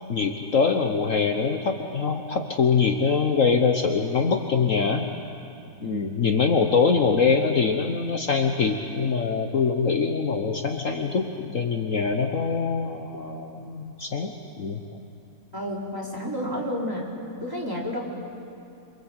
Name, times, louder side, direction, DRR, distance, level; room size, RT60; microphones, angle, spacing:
voice 1, 0.1-5.1 5.8-14.8, left 5 dB, 55° left, 4 dB, 1.5 m, -23 dB
voice 2, 15.5-17.0 17.4-18.0, equal, 10° right, -4 dB, 4.2 m, -30 dB
27.5 x 24.0 x 8.1 m, 2.6 s
omnidirectional pair, 1.7 m